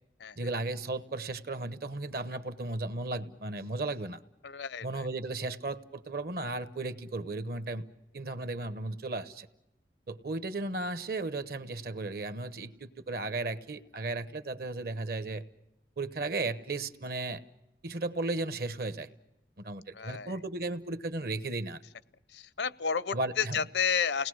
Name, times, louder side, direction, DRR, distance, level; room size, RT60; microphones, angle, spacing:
voice 1, 0.4-4.2 4.8-7.8 8.1-9.5 10.1-15.4 16.0-17.4 17.8-19.1 19.6-21.8 23.1-23.6, right 2 dB, 60° right, 13 dB, 1.1 m, -35 dB
voice 2, 4.4-5.1 19.9-20.3 22.3-24.3, left 6 dB, 80° left, 17 dB, 0.7 m, -31 dB
30.0 x 19.5 x 6.3 m, 0.93 s
head